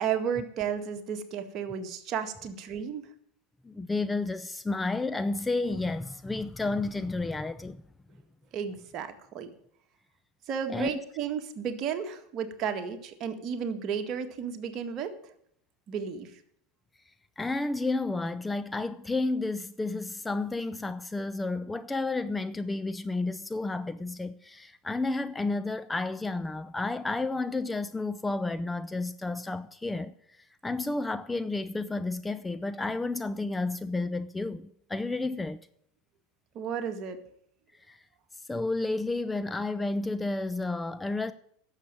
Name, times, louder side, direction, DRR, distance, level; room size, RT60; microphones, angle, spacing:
voice 1, 0.0-3.1 8.5-9.5 10.5-15.1 15.9-16.3 36.6-37.2, right 7 dB, 45° right, 1.8 m, -33 dB
voice 2, 3.6-7.8 10.7-10.9 17.4-30.1 30.6-35.6 37.9-38.0 38.5-41.3, left 3 dB, 10° left, 0.6 m, -31 dB
11.5 x 7.3 x 8.9 m
hypercardioid pair, 85°, 0 cm